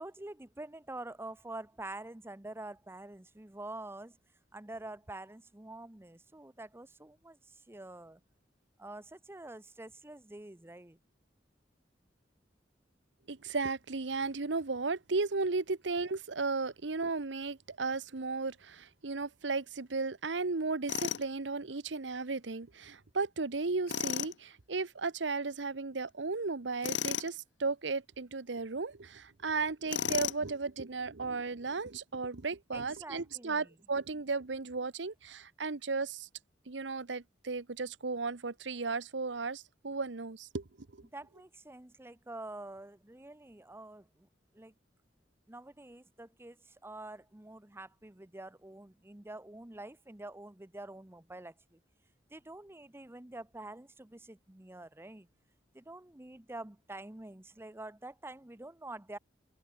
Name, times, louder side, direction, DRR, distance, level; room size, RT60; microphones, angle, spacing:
voice 1, 0.0-4.2 4.5-8.2 8.8-11.0 32.7-33.7 41.1-44.3 44.5-44.7 45.5-51.8 52.3-55.3 55.7-59.2, right 2 dB, 15° right, 0.9 m, -47 dB
voice 2, 13.3-36.3 36.7-40.6 40.9-41.1, right 4 dB, 85° right, 1.0 m, -35 dB
Tools, 20.9-21.3 23.9-24.3 26.8-27.3 29.9-30.5, left 8 dB, 85° left, 0.9 m, -33 dB
open air
head